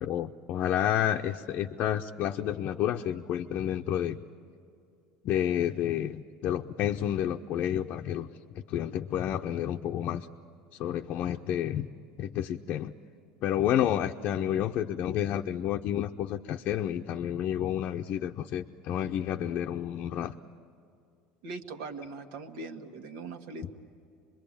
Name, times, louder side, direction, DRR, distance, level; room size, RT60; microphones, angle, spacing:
voice 1, 0.0-4.2 5.2-8.3 8.5-10.3 10.8-11.9 12.2-12.9 13.4-20.3, left 11 dB, 50° left, 2 dB, 0.7 m, -30 dB
voice 2, 21.4-23.7, right 3 dB, 75° right, 6 dB, 1.8 m, -41 dB
25.5 x 22.0 x 8.7 m, 2.5 s
supercardioid pair, 120°, 4 cm